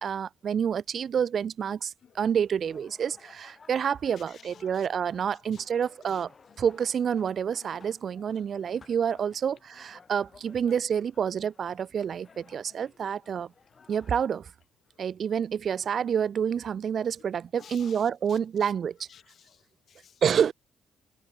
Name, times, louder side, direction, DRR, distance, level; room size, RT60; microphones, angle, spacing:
voice 1, 0.0-6.3 6.6-13.5 13.9-14.5 15.0-19.1 20.2-20.5, right 7 dB, 55° right, 0.3 m, -28 dB
sound 1, 2.4-14.2, left 5 dB, 40° left, 5.0 m, -58 dB
voice 2, 4.2-4.9 5.5-5.6 6.0-6.2 7.7-7.8 9.5-9.6 13.8-13.9 14.9-15.0 17.6-18.7 19.1-20.2, left 8 dB, 60° left, 0.7 m, -54 dB
cardioid pair, 90°, 0 cm